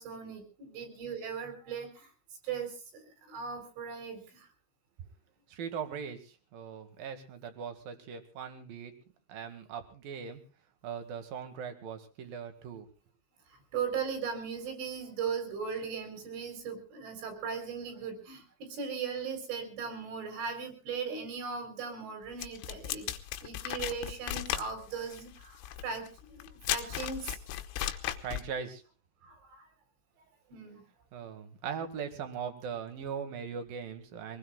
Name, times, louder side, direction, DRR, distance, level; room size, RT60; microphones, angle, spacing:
voice 1, 0.0-2.1 2.4-4.5 13.5-23.1 23.4-27.4 29.2-29.7 30.5-30.8, right 6 dB, 70° right, 6 dB, 6.4 m, -38 dB
voice 2, 5.5-8.9 9.3-10.4 10.8-12.9 28.2-28.8 31.1-34.4, right 7 dB, 55° right, 7 dB, 3.2 m, -40 dB
sound 1, 22.4-28.5, left 12 dB, 90° left, 3.6 m, -36 dB
25.0 x 19.5 x 2.3 m, 0.35 s
omnidirectional pair, 5.7 m